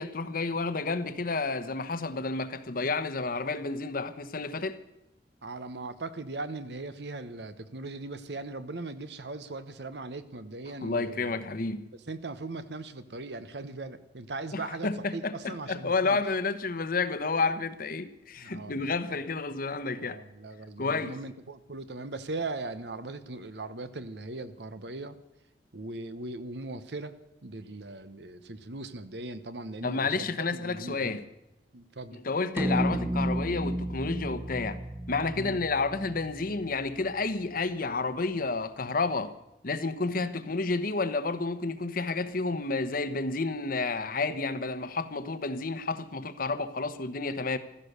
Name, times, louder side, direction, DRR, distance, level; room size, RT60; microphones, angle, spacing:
voice 1, 0.0-4.8 10.8-11.9 14.5-20.2 20.8-21.2 29.8-31.2 32.1-34.8 35.1-39.3 39.6-47.6, left 3 dB, 55° left, 1.0 m, -30 dB
voice 2, 5.4-11.5 12.1-16.2 18.4-18.9 20.0-25.2 25.7-27.1 27.4-31.2 31.7-32.2 35.3-35.6, right 2 dB, 70° right, 1.1 m, -39 dB
sound 1, 32.6-37.0, equal, 15° right, 0.8 m, -32 dB
15.5 x 13.5 x 6.7 m
head